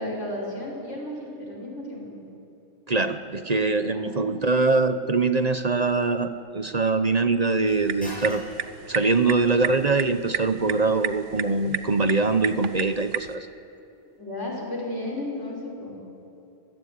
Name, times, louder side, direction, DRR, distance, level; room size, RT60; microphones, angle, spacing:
voice 1, 0.0-2.2 3.9-4.3 14.2-16.0, left 1 dB, 90° left, -2 dB, 6.1 m, -34 dB
voice 2, 2.9-8.4 8.9-13.5, right 3 dB, 40° right, 9 dB, 0.9 m, -23 dB
sound 1, 3.2-13.3, left 1 dB, 5° left, 7.7 m, -49 dB
sound 2, 7.7-13.3, right 8 dB, 85° right, 1.2 m, -33 dB
26.0 x 17.5 x 9.5 m, 2.9 s
omnidirectional pair, 1.2 m